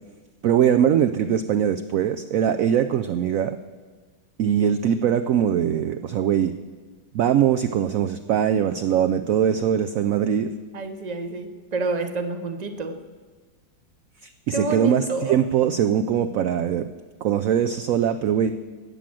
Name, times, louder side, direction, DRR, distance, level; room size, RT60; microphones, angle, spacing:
voice 1, 0.4-3.6 4.4-6.5 7.1-10.5 14.2-16.9 17.2-18.5, right 9 dB, 85° right, 10 dB, 0.7 m, -21 dB
voice 2, 10.7-13.0 14.5-15.4, right 2 dB, 50° right, 8 dB, 0.5 m, -28 dB
13.5 x 8.6 x 7.6 m, 1.4 s
omnidirectional pair, 2.0 m